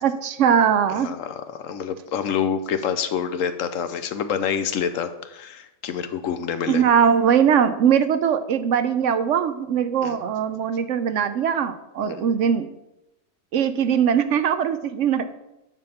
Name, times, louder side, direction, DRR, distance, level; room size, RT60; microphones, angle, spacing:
voice 1, 0.0-1.1 6.7-12.7 13.5-15.3, right 8 dB, 70° right, 11 dB, 0.9 m, -21 dB
voice 2, 0.9-6.8 10.0-10.2 12.0-12.3, left 7 dB, 70° left, 10 dB, 1.1 m, -27 dB
9.6 x 5.3 x 5.7 m, 0.92 s
omnidirectional pair, 1.4 m